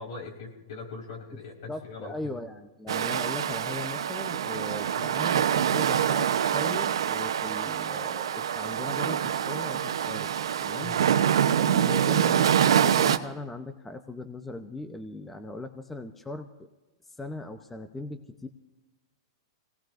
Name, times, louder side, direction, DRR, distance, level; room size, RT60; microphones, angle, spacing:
voice 1, 0.0-2.4 10.8-11.2, left 4 dB, 65° left, 0 dB, 4.8 m, -41 dB
voice 2, 1.7-6.3 6.5-10.3 10.6-11.0 11.6-16.7 17.0-18.5, left 2 dB, 10° left, 7 dB, 0.8 m, -39 dB
sound 1, 2.9-13.2, right 9 dB, 80° right, 0.9 m, -25 dB
25.0 x 18.0 x 2.6 m, 1.1 s
hypercardioid pair, 130°, 3 cm